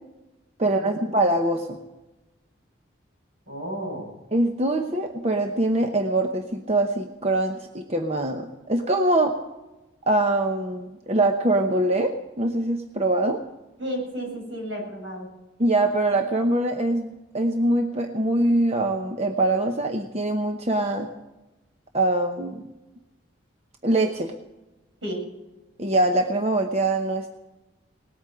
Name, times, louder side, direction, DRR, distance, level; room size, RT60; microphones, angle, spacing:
voice 1, 0.6-1.8 4.3-9.4 10.1-13.4 15.6-21.1 21.9-22.7 23.8-24.3 25.8-27.3, right 1 dB, 35° right, 4 dB, 0.9 m, -23 dB
voice 2, 3.5-4.1 13.8-15.3 25.0-25.2, equal, 80° right, 0 dB, 7.7 m, -32 dB
19.0 x 8.8 x 7.8 m, 1.0 s
head